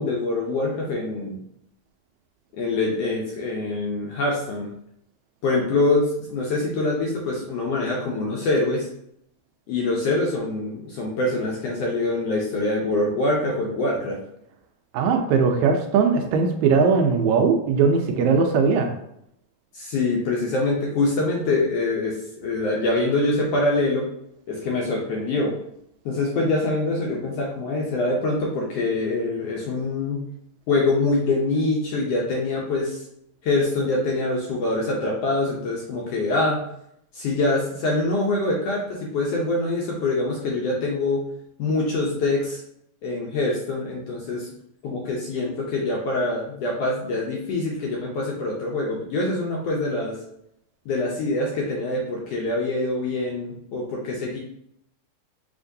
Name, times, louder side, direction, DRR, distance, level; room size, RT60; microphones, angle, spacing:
voice 1, 0.0-1.4 2.6-4.7 5.4-8.9 9.7-14.2 19.7-24.1 24.5-25.5 26.0-30.2 30.7-33.0 33.4-36.6 37.1-41.2 41.6-42.6 43.0-44.5 44.8-50.2 50.9-54.4, left 2 dB, 75° left, -2 dB, 1.5 m, -24 dB
voice 2, 14.9-18.9, right 5 dB, 80° right, 4 dB, 1.8 m, -19 dB
6.0 x 2.9 x 2.6 m, 0.75 s
omnidirectional pair, 3.3 m